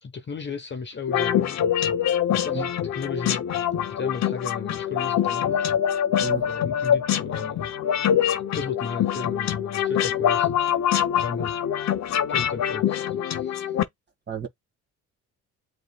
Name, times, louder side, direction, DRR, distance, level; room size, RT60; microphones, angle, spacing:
voice 1, 0.0-1.6 2.3-3.4 3.9-5.6 6.5-7.6 8.3-10.5 11.2-11.5 12.3-13.7, left 5 dB, 35° left, 1.0 m, -35 dB
sound 1, 1.1-13.8, left 9 dB, 65° left, 0.9 m, -24 dB
voice 2, 2.5-2.7 6.2-6.4 14.3-14.5, right 6 dB, 35° right, 2.1 m, -32 dB
7.9 x 2.8 x 2.3 m
cardioid pair, 90°, 30 cm